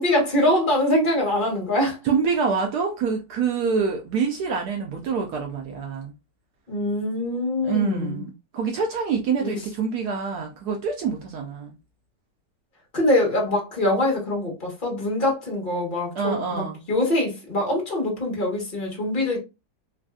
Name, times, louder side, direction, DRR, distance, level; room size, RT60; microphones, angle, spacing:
voice 1, 0.0-2.0 6.7-8.2 9.4-9.5 12.9-16.6 16.9-19.4, left 1 dB, 30° left, 1.2 m, -23 dB
voice 2, 2.0-6.1 7.6-11.8 16.1-16.9, right 5 dB, 70° right, 1.0 m, -26 dB
3.2 x 2.5 x 2.2 m
omnidirectional pair, 1.9 m